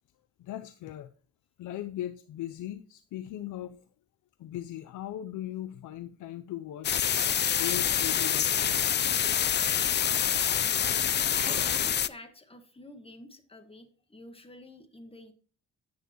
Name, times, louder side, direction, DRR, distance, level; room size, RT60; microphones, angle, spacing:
voice 1, 0.4-1.1 1.6-3.8 4.4-7.2 7.5-8.9, left 12 dB, 80° left, 0.7 m, -39 dB
sound 1, 6.8-12.1, left 9 dB, 35° left, 0.5 m, -26 dB
voice 2, 11.3-15.3, left 1 dB, 20° left, 1.6 m, -48 dB
10.0 x 8.9 x 3.0 m
cardioid pair, 90°, 30 cm